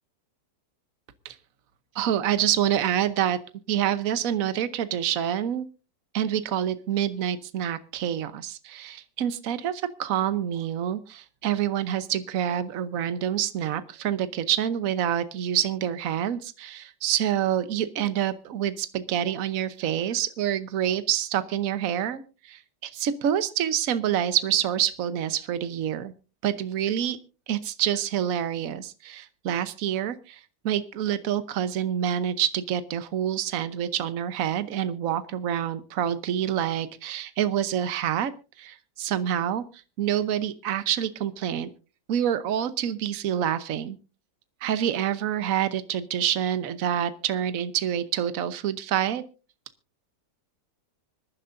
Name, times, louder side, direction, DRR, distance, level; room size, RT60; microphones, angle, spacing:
voice 1, 1.9-3.4 3.7-5.6 6.1-26.1 26.4-27.2 27.5-38.3 38.6-39.6 40.0-41.7 42.1-44.0 44.6-49.2, right 10 dB, 60° right, 13 dB, 1.2 m, -27 dB
25.5 x 10.5 x 2.6 m, 0.32 s
omnidirectional pair, 1.8 m